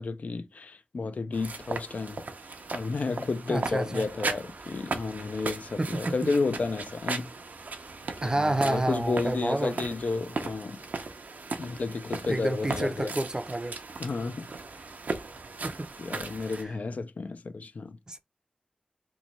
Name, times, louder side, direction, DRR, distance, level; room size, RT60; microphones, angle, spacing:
voice 1, 0.0-2.2 2.7-7.3 8.2-10.8 11.6-13.2 14.0-14.5 16.0-18.0, left 3 dB, 65° left, 0.3 m, -32 dB
sound 1, 1.3-16.6, right 3 dB, 80° right, 0.5 m, -37 dB
voice 2, 3.5-4.1 5.8-6.1 8.2-9.7 12.3-13.8 15.6-15.9 16.6-16.7 18.1-18.2, right 2 dB, 25° right, 0.4 m, -29 dB
3.0 x 2.1 x 3.9 m
wide cardioid pair, 75°, 3 cm